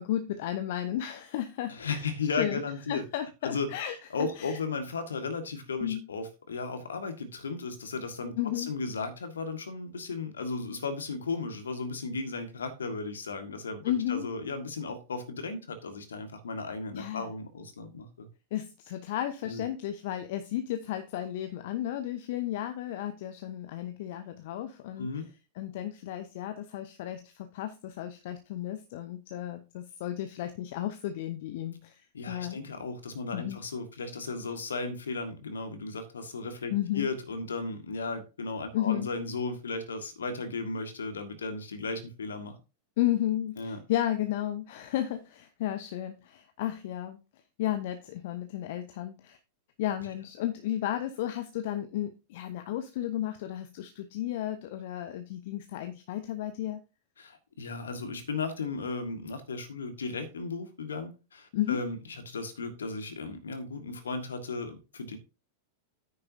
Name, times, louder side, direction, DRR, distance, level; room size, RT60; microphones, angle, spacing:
voice 1, 0.0-2.0 2.4-2.6 2.9-4.6 5.8-6.1 8.4-8.7 13.8-14.3 16.9-17.3 18.5-25.1 25.6-32.6 33.3-33.6 36.7-37.1 38.7-39.1 43.0-47.2 47.6-49.4 49.8-56.8 61.5-61.8, left 12 dB, 50° left, 9 dB, 0.8 m, -33 dB
voice 2, 1.7-3.0 3.4-3.7 4.1-18.3 19.4-19.6 25.0-25.3 32.1-42.6 43.6-43.8 57.2-65.2, left 4 dB, 70° left, 8 dB, 1.8 m, -35 dB
9.7 x 9.6 x 2.7 m, 0.31 s
figure-of-eight pair, 90°, 0 cm